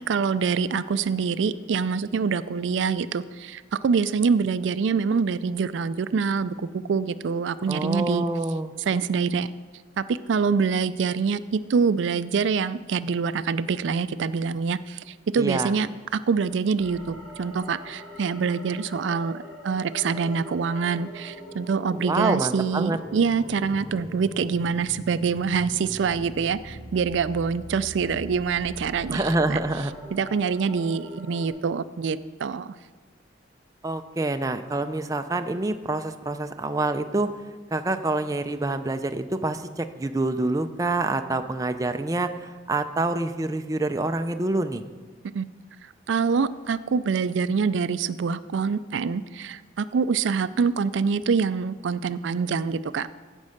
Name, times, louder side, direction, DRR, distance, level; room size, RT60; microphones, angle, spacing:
voice 1, 0.1-8.3 8.9-9.5 10.0-29.2 29.5-29.6 30.1-32.7 45.3-45.5 46.1-53.1, right 5 dB, 80° right, 15 dB, 0.4 m, -25 dB
voice 2, 7.7-8.7 15.4-15.7 22.0-23.0 29.1-29.9 33.8-37.3 37.7-44.8, right 2 dB, 20° right, 8 dB, 0.4 m, -26 dB
sound 1, 16.8-31.5, equal, 5° right, 2.7 m, -42 dB
15.5 x 5.4 x 6.5 m, 1.4 s
head